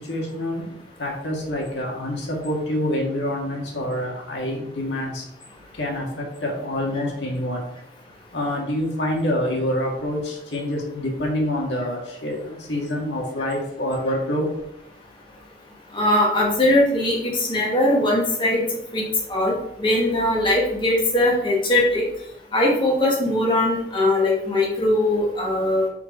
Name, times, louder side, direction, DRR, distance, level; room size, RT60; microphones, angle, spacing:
voice 1, 0.0-5.3 5.7-7.6 8.3-14.5, left 1 dB, 90° left, -1 dB, 1.8 m, -26 dB
voice 2, 15.9-18.6 18.9-19.0 19.3-22.0 22.5-25.9, left 1 dB, 30° left, -4 dB, 1.8 m, -20 dB
7.1 x 4.5 x 4.6 m, 0.80 s
head